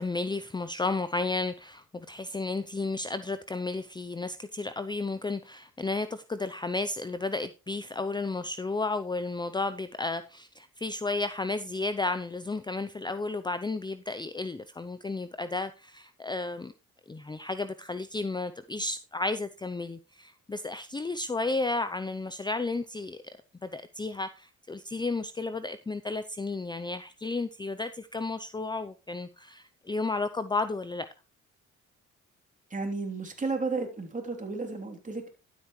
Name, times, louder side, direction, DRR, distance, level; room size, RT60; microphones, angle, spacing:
voice 1, 0.0-16.7 17.1-23.2 23.6-31.1, left 3 dB, 15° left, 12 dB, 0.6 m, -33 dB
voice 2, 32.7-35.3, right 3 dB, 25° right, 3 dB, 3.2 m, -33 dB
12.5 x 8.2 x 3.2 m, 0.30 s
cardioid pair, 90°, 30 cm